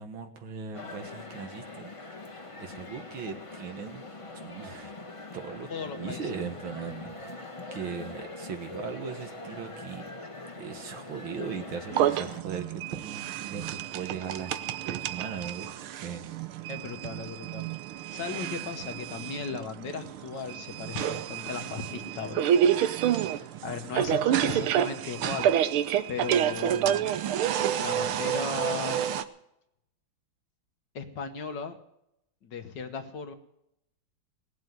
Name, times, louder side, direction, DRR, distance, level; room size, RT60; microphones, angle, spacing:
voice 1, 0.0-4.0 4.3-4.9 5.3-7.4 7.7-10.0 10.6-15.7 15.9-16.6, right 6 dB, 70° right, 6 dB, 2.3 m, -39 dB
sound 1, 0.7-12.4, left 2 dB, 20° left, 1.1 m, -43 dB
voice 2, 5.7-6.2 16.7-17.6 17.9-22.5 23.2-25.5 26.1-27.0 27.7-29.0 30.9-31.8 32.4-33.3, left 6 dB, 60° left, 8 dB, 1.7 m, -37 dB
sound 2, 11.9-29.2, right 10 dB, 85° right, 1.7 m, -29 dB
18.0 x 7.7 x 9.4 m, 0.79 s
omnidirectional pair, 2.3 m